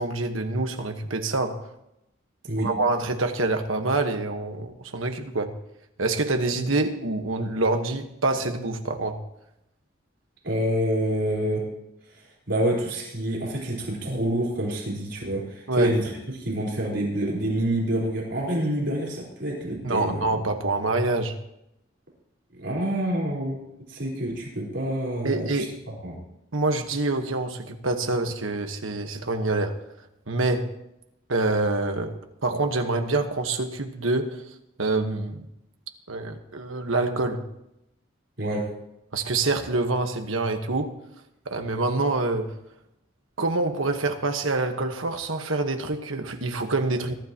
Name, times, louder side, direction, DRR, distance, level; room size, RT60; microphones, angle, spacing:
voice 1, 0.0-1.7 2.6-5.5 6.0-9.2 15.7-15.9 19.8-21.4 25.2-25.8 26.5-29.8 30.3-30.7 31.3-35.5 36.1-37.4 39.1-40.9 41.4-42.5 43.4-47.1, right 2 dB, 90° right, 1.3 m, -26 dB
voice 2, 10.4-11.6 12.5-16.1 16.4-20.3 22.6-23.6 23.9-25.6 26.0-26.2 38.4-38.6, right 1 dB, 60° right, 4.3 m, -27 dB
23.0 x 12.5 x 3.0 m
head